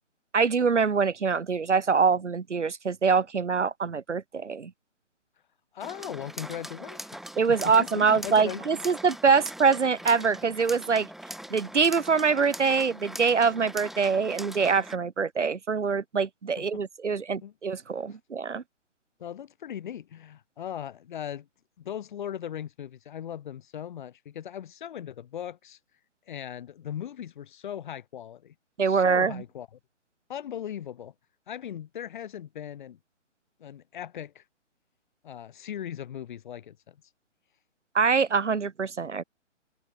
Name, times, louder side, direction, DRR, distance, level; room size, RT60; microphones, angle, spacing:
voice 1, 0.3-4.7 7.4-11.1 11.5-18.6 28.8-29.4 37.9-39.2, right 5 dB, 70° right, 2.0 m, -24 dB
voice 2, 5.7-8.6 16.6-16.8 17.1-17.5 19.2-21.5 21.8-25.8 26.3-28.5 28.9-29.7 30.3-31.1 31.5-33.0 33.6-34.4 35.2-37.0, left 10 dB, 40° left, 2.0 m, -38 dB
sound 1, 5.8-15.0, right 1 dB, ahead, 4.3 m, -41 dB
figure-of-eight pair, 140°, 37 cm